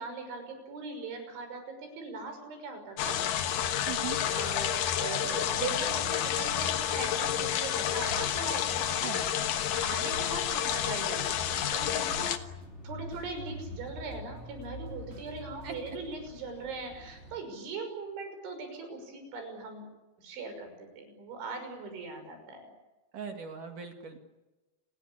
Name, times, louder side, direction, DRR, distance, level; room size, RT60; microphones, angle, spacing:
voice 1, 0.0-3.6 4.3-9.4 9.8-12.5 12.8-19.9 20.2-22.7, right 3 dB, 85° right, 6 dB, 8.3 m, -40 dB
sound 1, 3.0-12.4, left 10 dB, 65° left, 2.3 m, -30 dB
voice 2, 3.9-4.2 9.0-9.4 15.6-16.0 23.1-24.2, right 7 dB, 50° right, 4 dB, 3.1 m, -40 dB
sound 2, 8.1-11.4 11.6-11.7 12.1-12.6 13.1-13.6 14.1-15.9, right 2 dB, 35° right, 4.0 m, -49 dB
Bicycle / Mechanisms, 11.2-17.4, equal, 15° left, 3.7 m, -45 dB
29.5 x 21.0 x 8.6 m, 1.1 s
omnidirectional pair, 5.3 m